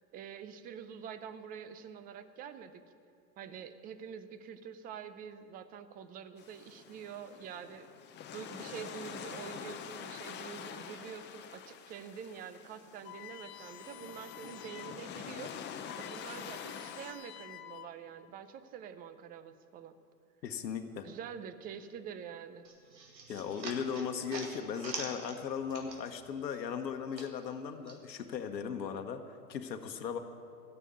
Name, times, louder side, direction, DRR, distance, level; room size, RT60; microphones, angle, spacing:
voice 1, 0.1-2.8 3.4-7.9 8.3-15.5 16.0-20.0 21.0-22.7, right 8 dB, 20° right, 12 dB, 0.5 m, -46 dB
sound 1, 6.4-17.1, left 8 dB, 20° left, 0.7 m, -46 dB
sound 2, 13.0-15.1 15.4-15.5 15.7-18.2, left 14 dB, 55° left, 0.9 m, -50 dB
voice 2, 20.4-21.1 23.3-30.2, left 7 dB, 80° left, 6 dB, 1.1 m, -37 dB
sound 3, 22.6-26.3 26.6-28.0, right 4 dB, 85° right, 2.2 m, -45 dB
14.5 x 6.8 x 9.3 m, 2.4 s
hypercardioid pair, 110°, 49 cm